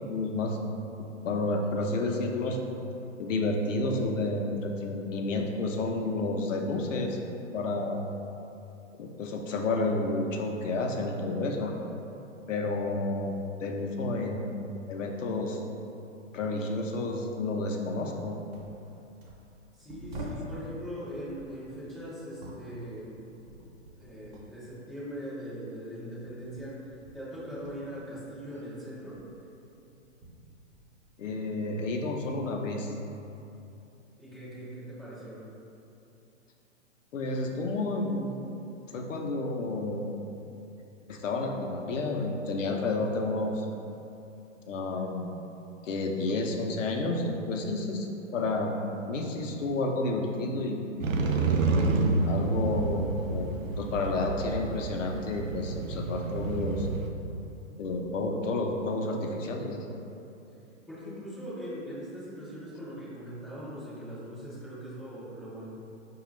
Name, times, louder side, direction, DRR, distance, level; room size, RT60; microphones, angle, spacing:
voice 1, 0.1-0.6 1.2-2.6 3.2-7.2 7.5-8.0 9.0-11.7 12.5-14.6 14.9-15.6 16.3-18.4 31.2-32.9 37.1-38.4 38.9-40.2 41.1-43.7 44.7-45.3 45.8-48.1 48.3-48.7 49.1-50.9 52.3-53.1 53.3-53.5 53.8-56.9 57.8-59.8, left 2 dB, 75° left, 2 dB, 0.6 m, -30 dB
sound 1, 18.5-20.6 21.2-24.6 24.9-28.7 28.9-31.3 31.7-32.4 33.2-33.4, equal, 35° right, 0.7 m, -47 dB
voice 2, 19.7-23.2 23.9-29.2 34.2-35.4 60.9-65.7, equal, 5° left, -20 dB, 0.3 m, -41 dB
Motorcycle, 51.0-57.1, right 3 dB, 85° right, 0.5 m, -29 dB
4.8 x 2.4 x 3.1 m, 2.8 s
hypercardioid pair, 130°, 38 cm